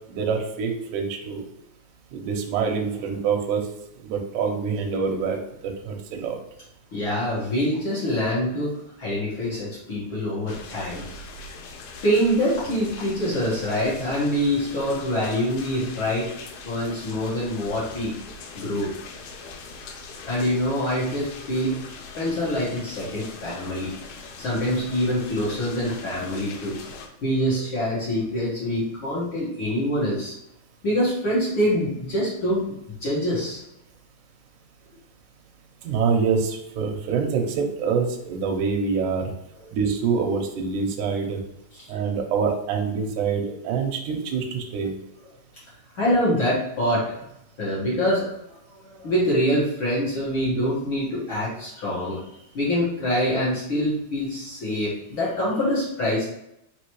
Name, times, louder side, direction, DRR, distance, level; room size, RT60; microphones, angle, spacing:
voice 1, 0.1-1.5 2.1-3.6 4.0-5.4 5.6-6.4 35.8-39.3 39.7-41.4 41.9-44.9, right 5 dB, 80° right, 2 dB, 1.9 m, -25 dB
voice 2, 6.9-11.0 12.0-16.3 16.6-18.1 18.5-18.9 20.2-21.8 22.1-23.9 24.4-26.7 27.2-30.3 30.8-32.6 33.0-33.6 41.8-41.9 45.9-47.2 47.6-48.3 48.8-52.2 52.5-56.2, equal, 60° left, -7 dB, 1.3 m, -25 dB
sound 1, 10.5-27.1, left 4 dB, 80° left, 2.3 m, -41 dB
5.4 x 3.1 x 3.0 m, 0.81 s
omnidirectional pair, 4.3 m